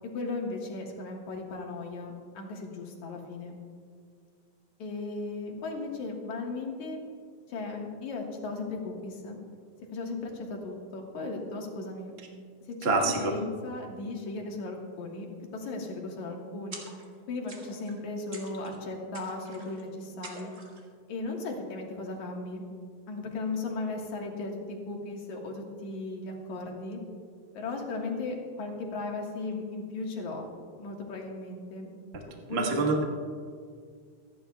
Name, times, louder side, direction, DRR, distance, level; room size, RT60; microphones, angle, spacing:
voice 1, 0.1-3.6 4.8-7.0 7.5-9.4 9.9-12.1 12.8-15.3 15.5-16.8 17.3-20.5 21.1-22.6 23.1-27.0 27.5-30.4 30.8-31.9 32.5-32.9, left 3 dB, 75° left, 0 dB, 2.8 m, -36 dB
voice 2, 12.8-13.4 32.1-32.2 32.5-33.0, right 3 dB, 80° right, 1 dB, 0.5 m, -26 dB
sound 1, 16.7-17.2 17.5-18.0 18.3-18.8 19.1-19.8 20.2-20.9, right 2 dB, 30° right, 1.3 m, -46 dB
26.0 x 11.0 x 2.3 m, 2.1 s
omnidirectional pair, 3.4 m